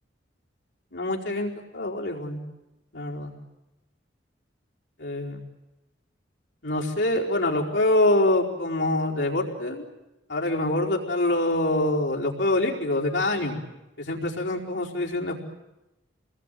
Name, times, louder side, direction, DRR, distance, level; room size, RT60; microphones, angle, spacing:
voice 1, 0.9-2.4 2.9-3.3 5.0-5.4 6.6-9.8 10.3-13.6 14.0-15.4, left 1 dB, 75° left, -2 dB, 4.8 m, -25 dB
28.0 x 21.0 x 9.3 m, 0.97 s
head